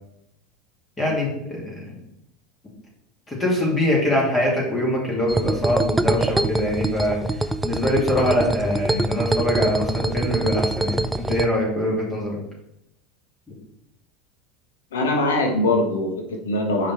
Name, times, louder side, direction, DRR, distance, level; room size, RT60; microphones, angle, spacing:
voice 1, 1.0-2.0 3.3-7.2 7.6-12.4, left 1 dB, 20° left, -3 dB, 2.6 m, -23 dB
sound 1, 5.3-11.5, right 2 dB, 10° right, 0.4 m, -24 dB
voice 2, 14.9-16.9, left 2 dB, 90° left, 3 dB, 1.5 m, -22 dB
5.8 x 5.0 x 4.3 m, 0.83 s
hypercardioid pair, 95°, 0 cm